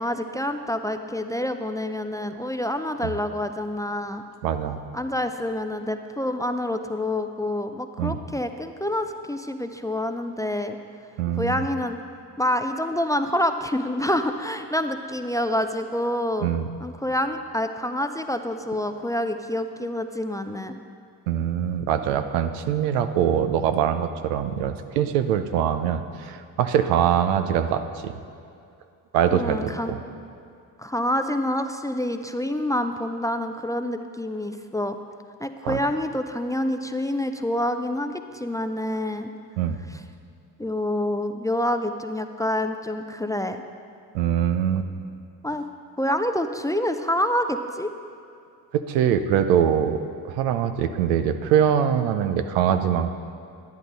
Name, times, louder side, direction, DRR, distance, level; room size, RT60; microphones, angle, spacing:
voice 1, 0.0-4.2 4.9-10.8 11.4-12.0 12.4-16.5 16.8-20.8 29.3-29.9 30.8-35.0 35.4-39.3 39.9-40.0 40.6-43.6 45.4-45.7 46.0-47.9, left 1 dB, 10° left, 7 dB, 0.4 m, -27 dB
voice 2, 4.4-4.8 8.0-8.2 11.2-11.7 16.4-16.7 21.3-28.1 29.1-30.0 35.6-35.8 39.6-39.8 44.1-44.9 48.7-53.1, right 9 dB, 85° right, 9 dB, 0.7 m, -23 dB
10.5 x 10.5 x 4.0 m, 2.5 s
hypercardioid pair, 60°, 46 cm